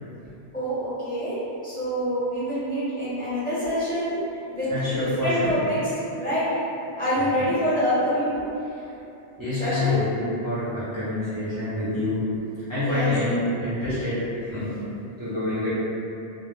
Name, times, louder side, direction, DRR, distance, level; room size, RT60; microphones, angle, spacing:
voice 1, 0.5-1.4 1.6-4.2 4.5-5.8 6.1-6.5 7.0-8.4 9.5-10.0 12.8-13.1 13.8-14.1, equal, 10° left, -14 dB, 0.9 m, -26 dB
voice 2, 4.7-5.5 7.2-7.5 9.4-12.2 12.7-15.7, left 2 dB, 25° right, -13 dB, 0.5 m, -27 dB
2.0 x 2.0 x 3.1 m, 2.8 s
omnidirectional pair, 1.1 m